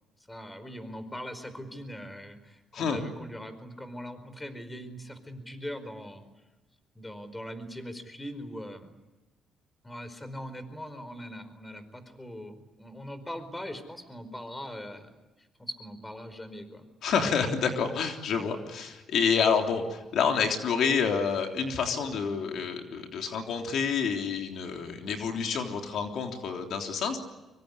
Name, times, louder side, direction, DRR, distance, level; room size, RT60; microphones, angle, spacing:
voice 1, 0.3-6.2 6.9-8.9 9.8-16.9, equal, 15° left, 11 dB, 4.8 m, -41 dB
voice 2, 17.0-27.2, left 6 dB, 70° left, 3 dB, 3.4 m, -28 dB
25.0 x 24.0 x 9.9 m, 1.1 s
cardioid pair, 90°, 0 cm